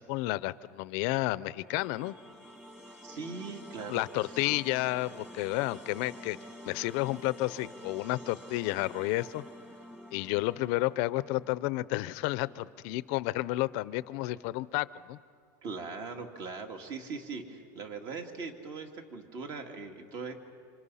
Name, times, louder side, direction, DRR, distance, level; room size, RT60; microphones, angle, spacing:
voice 1, 0.0-2.1 3.9-6.4 6.6-9.4 10.1-15.2, left 19 dB, 55° left, 17 dB, 0.6 m, -31 dB
sound 1, 1.7-12.7, equal, 10° right, 1.9 m, -49 dB
voice 2, 3.0-4.6 15.6-20.3, right 4 dB, 40° right, 4 dB, 2.4 m, -40 dB
28.5 x 26.5 x 5.7 m, 2.3 s
supercardioid pair, 150°, 10 cm